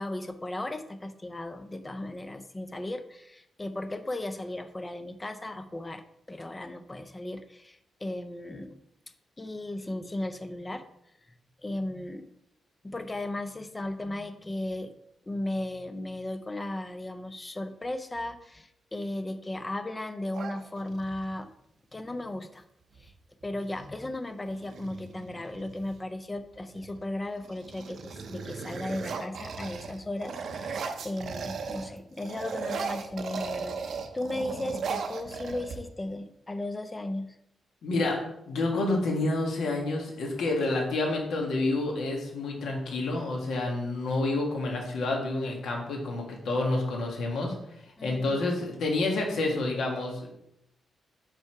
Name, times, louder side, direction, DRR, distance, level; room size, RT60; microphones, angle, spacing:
voice 1, 0.0-6.0 6.3-8.8 9.4-10.8 11.6-12.3 12.8-14.9 15.3-21.5 21.9-22.6 23.0-23.1 23.4-37.4 48.0-48.4, left 1 dB, 15° left, 8 dB, 0.4 m, -36 dB
sound 1, 20.3-21.3 23.0-23.1 23.4-23.9 24.5-26.0 26.6-27.0 27.4-31.9 32.2-36.1, right 5 dB, 60° right, 0.6 m, -37 dB
voice 2, 37.8-38.2 38.5-47.5 48.0-50.3, left 2 dB, 70° left, 0 dB, 1.6 m, -29 dB
5.4 x 4.7 x 4.6 m, 0.79 s
wide cardioid pair, 175°, 0 cm